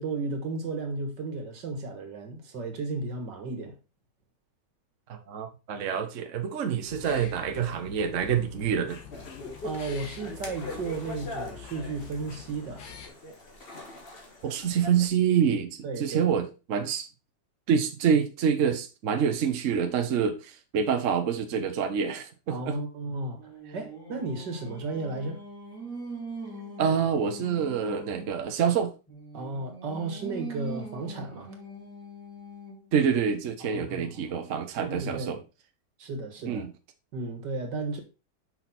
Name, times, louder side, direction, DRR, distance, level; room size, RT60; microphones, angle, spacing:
voice 1, 0.0-3.8 9.6-12.9 15.8-16.3 22.5-25.4 29.3-31.5 33.6-34.3 34.8-35.4 36.0-36.7 37.1-38.0, right 3 dB, 75° right, 2.2 m, -34 dB
voice 2, 5.1-9.0 14.4-17.1 17.7-22.3 22.7-22.8 26.8-28.9 32.9-35.4 36.5-36.7, right 7 dB, 55° right, 1.1 m, -26 dB
sound 1, 6.9-13.1, left 8 dB, 80° left, 1.9 m, -46 dB
sound 2, 9.1-15.1, left 2 dB, 35° left, 1.7 m, -42 dB
Singing, 23.0-28.5 29.1-32.9, right 2 dB, ahead, 3.4 m, -42 dB
6.3 x 5.6 x 4.2 m
omnidirectional pair, 1.9 m